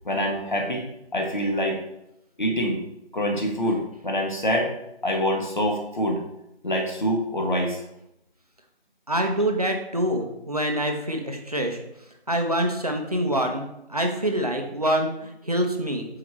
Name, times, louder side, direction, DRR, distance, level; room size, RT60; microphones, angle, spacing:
voice 1, 0.0-0.9 1.1-1.8 2.4-2.8 3.1-4.8 5.0-6.2 6.6-7.8, equal, 45° left, 2 dB, 1.2 m, -25 dB
voice 2, 9.1-11.8 12.3-13.6 13.9-16.1, right 1 dB, 35° right, 3 dB, 0.7 m, -25 dB
6.9 x 4.8 x 3.1 m, 0.84 s
figure-of-eight pair, 170°, 33 cm